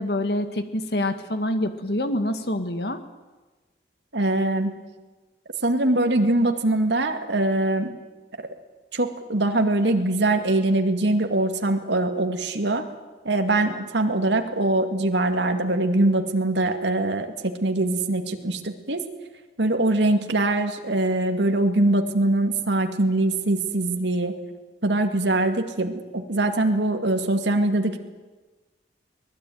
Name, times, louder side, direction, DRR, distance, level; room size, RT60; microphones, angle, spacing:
voice 1, 0.0-3.0, left 1 dB, 65° left, 9 dB, 1.9 m, -26 dB
voice 2, 4.1-4.8 5.6-8.0 8.4-8.5 8.9-12.8 13.2-19.0 19.6-24.3 24.8-28.0, right 2 dB, 80° right, 5 dB, 2.3 m, -23 dB
24.0 x 19.0 x 9.4 m, 1.2 s
head